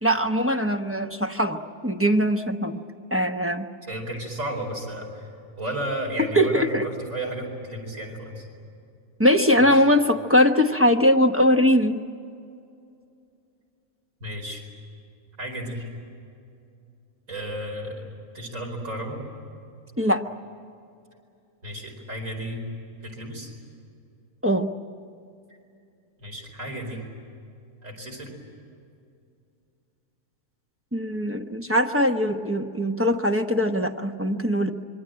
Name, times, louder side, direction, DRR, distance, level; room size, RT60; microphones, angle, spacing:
voice 1, 0.0-2.8 3.1-3.7 6.3-6.9 9.2-12.0 20.0-20.2 24.4-24.7 30.9-34.7, equal, 10° right, 4 dB, 0.8 m, -21 dB
voice 2, 3.8-5.3 5.6-8.5 9.6-9.9 14.2-14.6 15.4-15.9 17.3-18.1 18.3-19.2 21.6-22.6 23.0-23.5 26.2-27.0 27.8-28.3, right 1 dB, 55° right, 1 dB, 5.1 m, -33 dB
26.5 x 24.0 x 8.9 m, 2.5 s
omnidirectional pair, 1.6 m